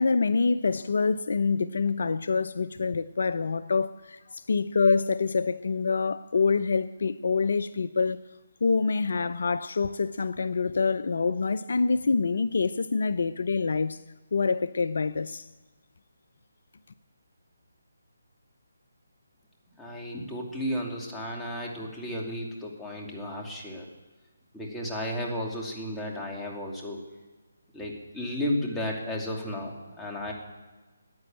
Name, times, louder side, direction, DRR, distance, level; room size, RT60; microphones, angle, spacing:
voice 1, 0.0-8.2 8.6-14.0 14.3-15.5, left 4 dB, 60° left, 0.6 m, -26 dB
voice 2, 19.8-23.9 24.5-27.0 27.7-30.3, left 1 dB, 5° left, 2.6 m, -33 dB
15.0 x 9.6 x 8.9 m
figure-of-eight pair, 155°, 0 cm